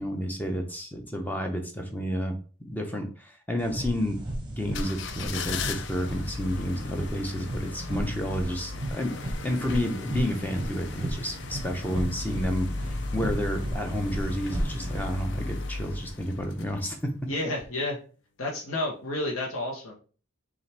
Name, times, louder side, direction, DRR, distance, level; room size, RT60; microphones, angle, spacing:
voice 1, 0.0-2.4 2.7-17.0, equal, 10° left, 3 dB, 0.6 m, -31 dB
sound 1, 3.6-15.2, right 1 dB, 20° right, 0.9 m, -35 dB
sound 2, 4.6-17.1 17.6-17.7, left 3 dB, 55° left, 0.4 m, -37 dB
voice 2, 17.3-18.0 18.4-19.9, left 2 dB, 80° left, -2 dB, 0.9 m, -30 dB
5.5 x 2.5 x 3.3 m, 0.39 s
head